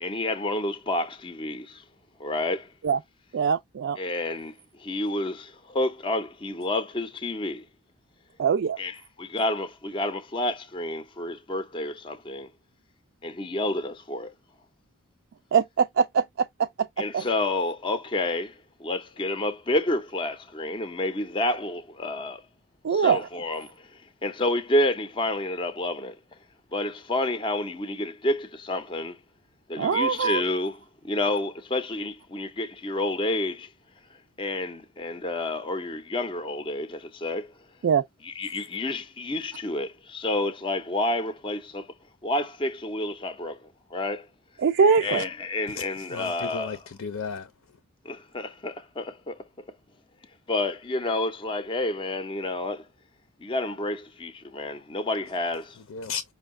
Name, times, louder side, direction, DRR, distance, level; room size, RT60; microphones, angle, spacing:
voice 1, 0.0-1.8 2.2-2.7 4.0-7.7 8.8-12.5 13.2-14.3 17.0-22.4 22.9-26.2 26.7-29.2 29.7-30.7 31.0-33.7 34.4-37.5 38.2-41.9 42.2-44.3 45.0-46.8 48.0-49.4 50.5-52.9 53.4-55.8, left 1 dB, 25° left, 0.5 m, -29 dB
voice 2, 3.3-4.0 8.4-8.8 15.5-16.9 17.1-17.3 22.8-23.2 29.8-30.4 37.8-38.0 44.6-45.2, right 6 dB, 55° right, 0.4 m, -22 dB
voice 3, 45.7-47.5 55.9-56.2, left 5 dB, 75° left, 0.6 m, -34 dB
5.3 x 2.2 x 3.6 m
head